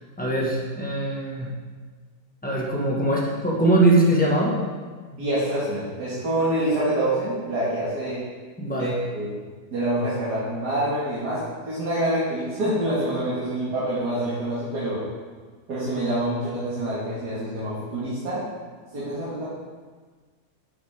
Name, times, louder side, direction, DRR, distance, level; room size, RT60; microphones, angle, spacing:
voice 1, 0.2-1.5 2.4-4.6 8.6-9.0, right 1 dB, 5° left, -4 dB, 1.5 m, -21 dB
voice 2, 5.2-8.2 8.8-9.4 9.7-11.4 11.7-15.0 15.7-18.4 18.9-19.4, right 1 dB, 75° right, -10 dB, 2.5 m, -26 dB
12.0 x 6.3 x 3.6 m, 1.5 s
omnidirectional pair, 1.8 m